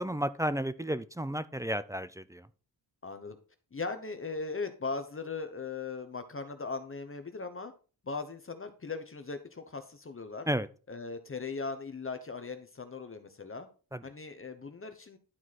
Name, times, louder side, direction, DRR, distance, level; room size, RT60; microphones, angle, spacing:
voice 1, 0.0-2.5 10.5-10.7 13.9-14.0, equal, 10° right, 0.4 m, -32 dB
voice 2, 3.0-3.4 3.7-7.7 8.0-10.5 10.9-13.7 14.0-15.2, left 4 dB, 30° left, 0.9 m, -39 dB
11.5 x 4.6 x 4.1 m
wide cardioid pair, 105°, 40 cm